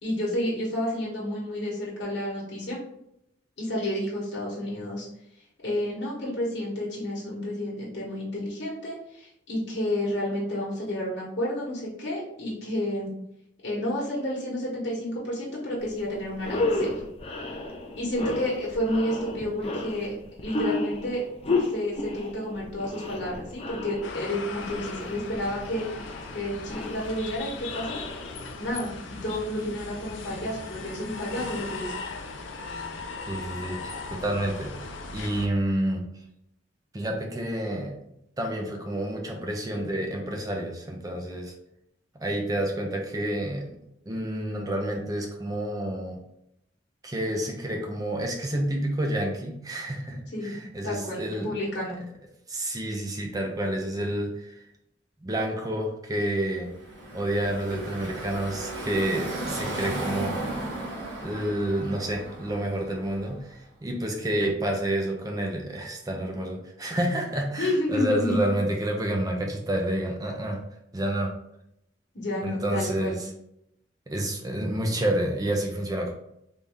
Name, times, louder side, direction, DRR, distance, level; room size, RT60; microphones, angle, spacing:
voice 1, 0.0-2.8 3.6-5.1 5.6-13.1 13.6-17.0 18.0-21.2 21.7-28.0 28.6-31.9 50.3-50.5 50.8-52.0 67.6-68.4 72.1-73.2, left 1 dB, 65° left, -6 dB, 1.2 m, -30 dB
sound 1, 15.9-16.0 16.3-28.7, left 2 dB, 30° left, 0.5 m, -33 dB
sound 2, 24.0-35.5, left 4 dB, 90° left, 0.5 m, -38 dB
voice 2, 33.3-34.7 35.1-36.0 36.9-38.0 38.4-41.5 42.1-43.8 44.1-46.2 47.0-51.5 52.5-54.6 55.2-56.7 57.1-60.4 61.2-70.6 70.9-71.3 72.4-73.3 74.1-76.1, right 1 dB, 20° right, 1 dB, 0.5 m, -29 dB
Car passing by / Traffic noise roadway noise, 56.6-63.5, right 1 dB, 85° right, 1.2 m, -35 dB
3.5 x 2.7 x 3.4 m, 0.78 s
head